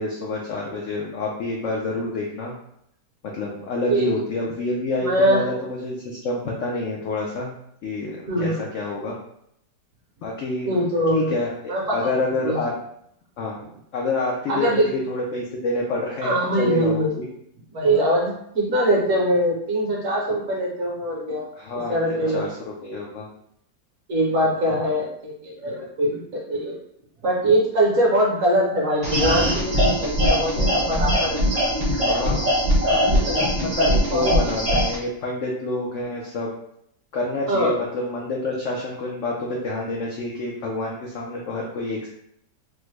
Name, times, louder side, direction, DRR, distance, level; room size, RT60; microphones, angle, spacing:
voice 1, 0.0-2.5 3.2-7.5 7.8-9.1 10.2-10.8 11.1-12.7 13.4-13.6 13.9-17.3 21.5-22.6 22.8-23.3 24.6-24.9 32.0-32.5 32.8-33.2 33.8-36.5 37.1-42.1, left 2 dB, 85° left, -2 dB, 0.6 m, -28 dB
voice 2, 5.0-5.5 8.3-8.6 10.7-11.3 11.7-12.0 12.4-12.6 14.5-14.8 16.2-17.1 17.7-21.5 21.9-22.4 24.1-26.8 27.2-31.4 33.1-33.6 34.1-34.5 37.5-37.7, right 1 dB, 55° right, -3 dB, 1.0 m, -22 dB
sound 1, 29.0-35.0, equal, 35° right, 0.7 m, -21 dB
3.5 x 2.1 x 3.1 m, 0.72 s
omnidirectional pair, 1.9 m